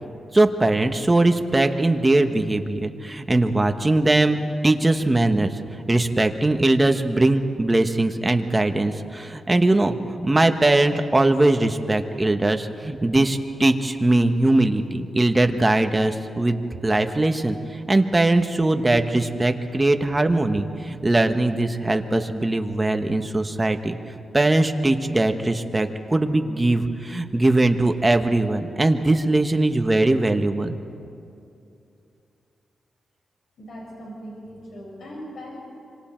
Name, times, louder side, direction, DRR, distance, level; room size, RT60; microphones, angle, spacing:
voice 1, 0.3-4.4 4.6-5.5 5.9-17.6 17.9-24.0 24.3-30.8, right 2 dB, 15° right, 6 dB, 1.1 m, -20 dB
voice 2, 33.6-35.5, equal, 70° left, -3 dB, 6.1 m, -39 dB
26.0 x 26.0 x 4.5 m, 2.6 s
wide cardioid pair, 130°, 0 cm